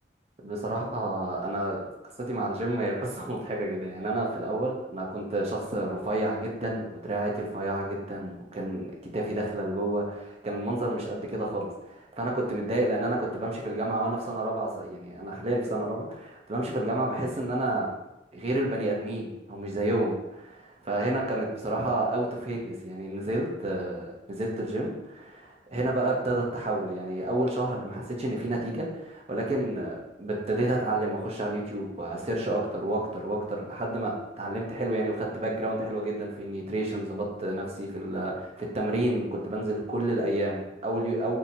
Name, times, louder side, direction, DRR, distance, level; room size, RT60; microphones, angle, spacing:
voice 1, 0.4-1.9 2.2-17.9 18.3-41.4, right 1 dB, 35° right, -1 dB, 0.7 m, -30 dB
4.1 x 2.8 x 2.7 m, 0.92 s
head